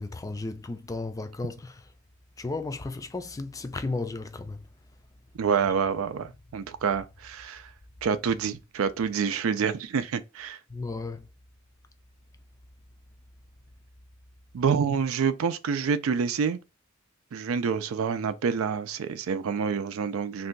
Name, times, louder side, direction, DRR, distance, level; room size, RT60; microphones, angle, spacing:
voice 1, 0.0-1.8 2.4-4.7 10.7-11.2, left 3 dB, 15° left, 0.3 m, -34 dB
voice 2, 5.3-7.7 8.0-10.6 14.5-16.6 17.3-20.5, right 6 dB, 85° right, 0.4 m, -27 dB
2.6 x 2.2 x 3.8 m
head